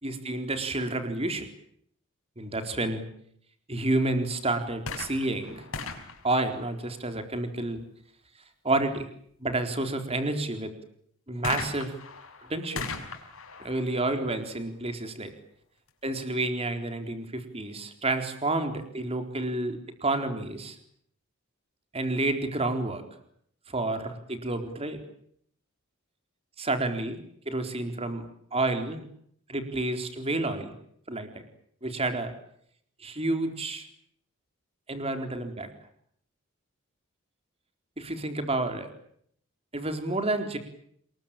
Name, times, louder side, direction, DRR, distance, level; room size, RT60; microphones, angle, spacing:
voice 1, 0.0-1.5 2.4-3.0 3.7-5.6 6.2-7.8 8.6-9.1 9.4-10.7 11.3-11.9 12.5-12.9 13.6-15.3 16.0-20.8 21.9-23.0 23.7-25.0 26.6-27.2 27.5-28.2 28.5-29.0 29.5-30.7 31.1-31.4 31.8-32.3 33.0-33.9 34.9-35.7 38.0-38.9 39.7-40.6, right 2 dB, 30° right, 7 dB, 4.1 m, -29 dB
sound 1, 4.8-7.4 11.4-15.1 15.9-16.0, left 4 dB, 75° left, 5.8 m, -39 dB
28.0 x 22.0 x 9.0 m, 0.68 s
head